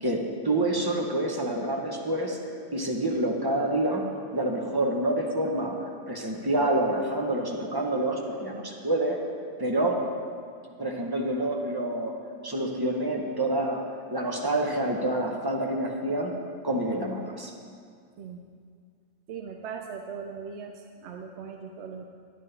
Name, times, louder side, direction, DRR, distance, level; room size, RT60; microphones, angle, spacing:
voice 1, 0.0-2.4 2.7-9.2 9.6-10.1 10.8-12.2 12.4-13.8 14.1-16.3 16.6-17.5, right 1 dB, 20° right, 1 dB, 0.8 m, -27 dB
voice 2, 19.3-22.0, right 6 dB, 75° right, 3 dB, 0.9 m, -39 dB
11.0 x 10.0 x 3.3 m, 2.2 s
omnidirectional pair, 1.2 m